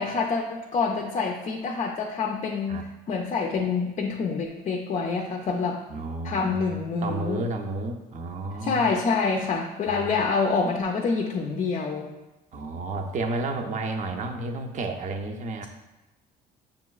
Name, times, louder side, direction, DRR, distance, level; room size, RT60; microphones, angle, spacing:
voice 1, 0.0-5.8 6.2-7.4 8.6-12.1, left 4 dB, 40° left, 1 dB, 0.4 m, -27 dB
voice 2, 5.9-6.5 7.0-8.9 12.5-15.7, right 2 dB, 45° right, 4 dB, 0.5 m, -31 dB
6.5 x 3.0 x 2.3 m, 1.0 s
cardioid pair, 110°, 17 cm